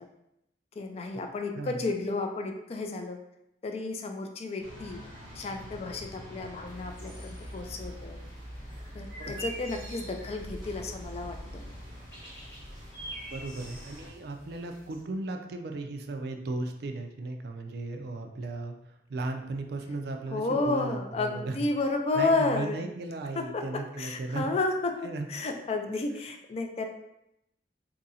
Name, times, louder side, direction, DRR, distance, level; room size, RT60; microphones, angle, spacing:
voice 1, 0.8-3.2 3.6-5.0 5.4-8.2 8.9-11.6 20.3-22.8 23.4-24.9 25.3-26.8, left 3 dB, 35° left, 4 dB, 0.3 m, -31 dB
sound 1, 4.6-14.1, equal, 25° right, 1.1 m, -47 dB
sound 2, 6.6-15.0, right 1 dB, 15° left, 1.4 m, -44 dB
voice 2, 13.3-21.7 22.1-24.5 25.0-25.3, right 2 dB, 60° right, 4 dB, 0.4 m, -36 dB
2.7 x 2.6 x 4.1 m, 0.84 s
head